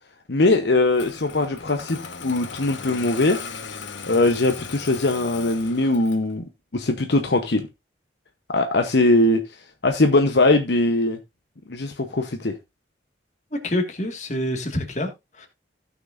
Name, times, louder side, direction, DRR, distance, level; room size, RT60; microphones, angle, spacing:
voice 1, 0.3-3.4 4.1-6.4 6.7-7.7 8.5-9.4 9.8-11.2 11.7-12.5, left 2 dB, 65° left, 0.9 m, -21 dB
Engine starting, 0.9-6.3, left 5 dB, 80° left, 1.2 m, -37 dB
voice 2, 13.5-15.5, left 1 dB, 40° left, 1.9 m, -27 dB
16.5 x 6.0 x 2.5 m
head